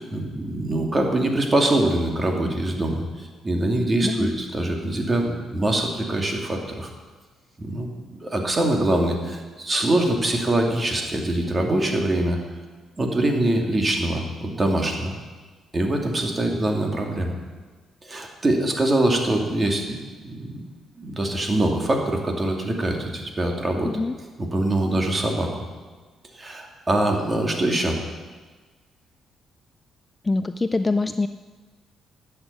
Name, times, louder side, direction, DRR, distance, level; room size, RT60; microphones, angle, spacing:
voice 1, 0.0-6.9 7.6-7.9 8.2-12.4 13.0-15.1 15.7-17.3 18.0-20.0 20.2-20.6 21.0-23.9 24.4-25.6 26.3-28.0, right 1 dB, 25° right, 2 dB, 2.5 m, -23 dB
voice 2, 4.0-4.3 23.8-24.1 30.2-31.3, left 3 dB, 20° left, 10 dB, 0.4 m, -24 dB
11.5 x 8.1 x 8.2 m, 1.4 s
cardioid pair, 90°, 0 cm